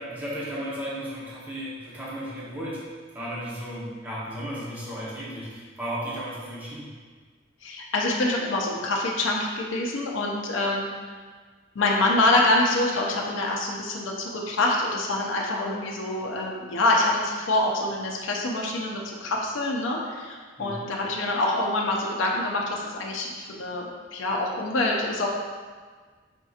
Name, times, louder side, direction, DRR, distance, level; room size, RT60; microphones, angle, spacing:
voice 1, 0.0-2.8 3.1-6.9 20.6-20.8, equal, 10° right, -9 dB, 0.8 m, -34 dB
voice 2, 7.6-10.9 11.7-25.3, left 2 dB, 75° left, -1 dB, 0.5 m, -26 dB
5.1 x 2.8 x 2.4 m, 1.5 s
head